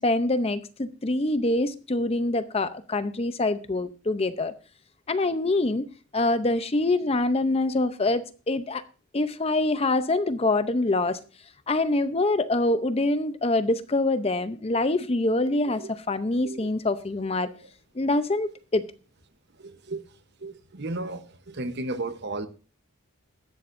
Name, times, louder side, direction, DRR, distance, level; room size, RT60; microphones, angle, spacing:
voice 1, 0.0-4.5 5.1-5.9 6.1-8.8 9.1-11.2 11.7-17.5 17.9-18.8, left 2 dB, 30° left, 0.6 m, -25 dB
voice 2, 19.6-20.0 20.4-22.5, right 2 dB, 50° right, 0.9 m, -34 dB
15.5 x 12.0 x 2.6 m
head